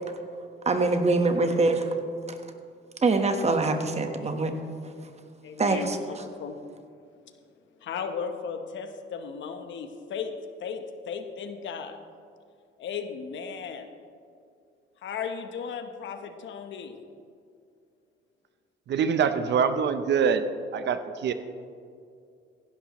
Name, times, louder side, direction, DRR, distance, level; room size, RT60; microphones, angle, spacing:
voice 1, 0.6-2.0 2.3-2.4 3.0-4.5 5.6-6.0, right 3 dB, 35° right, 6 dB, 1.2 m, -24 dB
voice 2, 5.4-6.6 7.8-12.0 12.8-13.9 15.0-17.0, left 6 dB, 70° left, 7 dB, 1.0 m, -36 dB
voice 3, 18.9-20.4 20.7-21.3, right 7 dB, 60° right, 10 dB, 0.7 m, -24 dB
15.5 x 11.5 x 3.1 m, 2.3 s
cardioid pair, 90°, 20 cm